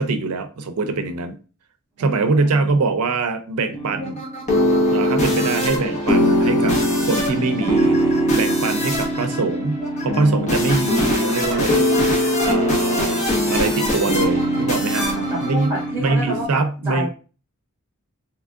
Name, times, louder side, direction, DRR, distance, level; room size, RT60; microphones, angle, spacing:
voice 1, 0.0-1.4 2.0-4.2 4.9-15.1 15.4-15.7 16.0-17.1, right 3 dB, 85° right, 0.5 m, -23 dB
voice 2, 2.0-2.7 14.9-17.1, right 1 dB, 10° right, 1.7 m, -29 dB
sound 1, 3.7-16.4, equal, 35° left, 1.0 m, -21 dB
3.5 x 2.9 x 2.4 m
head